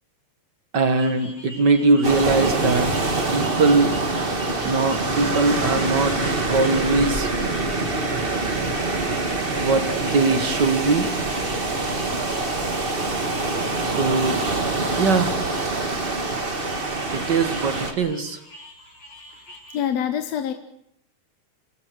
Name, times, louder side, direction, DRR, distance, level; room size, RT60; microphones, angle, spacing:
voice 1, 0.7-2.9 3.3-3.9 4.6-6.2 6.5-7.3 9.6-11.1 13.8-14.4 15.0-15.4 17.1-18.4, right 3 dB, 45° right, 8 dB, 1.6 m, -21 dB
sound 1, 0.9-19.9, left 1 dB, 40° left, 5.4 m, -45 dB
sound 2, 2.0-17.9, right 2 dB, 25° right, 1.3 m, -25 dB
voice 2, 19.7-20.5, left 9 dB, 65° left, 8 dB, 2.0 m, -25 dB
28.0 x 18.5 x 6.2 m, 0.71 s
omnidirectional pair, 3.4 m